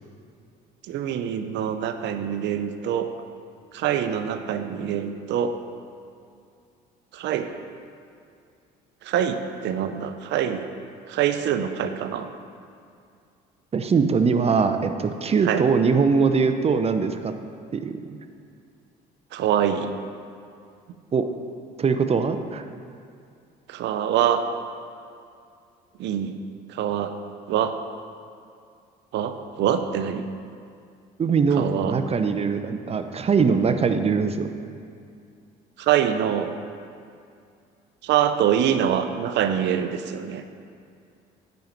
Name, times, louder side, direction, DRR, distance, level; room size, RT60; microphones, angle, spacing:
voice 1, 0.9-3.1 3.7-5.5 7.1-7.5 9.0-10.6 11.1-12.3 15.4-15.6 19.3-19.9 23.7-24.5 26.0-26.4 26.7-27.1 27.5-27.7 29.1-30.2 31.6-32.0 35.8-36.5 38.0-40.4, right 9 dB, 65° right, 9 dB, 0.7 m, -24 dB
voice 2, 13.7-17.3 17.7-18.2 21.1-21.3 21.8-22.6 31.2-34.5, right 5 dB, 30° right, 8 dB, 0.7 m, -22 dB
9.2 x 5.2 x 5.8 m, 2.4 s
supercardioid pair, 80°, 19 cm